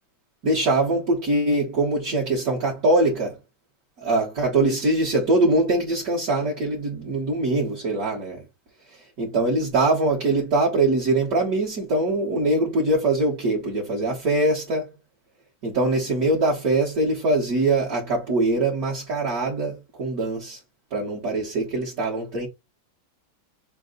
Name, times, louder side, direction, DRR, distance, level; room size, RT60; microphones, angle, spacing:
voice 1, 0.4-3.3 4.0-8.4 9.2-14.9 15.6-20.6 20.9-22.5, right 2 dB, 50° right, 1.6 m, -22 dB
6.5 x 2.2 x 3.7 m
omnidirectional pair, 2.0 m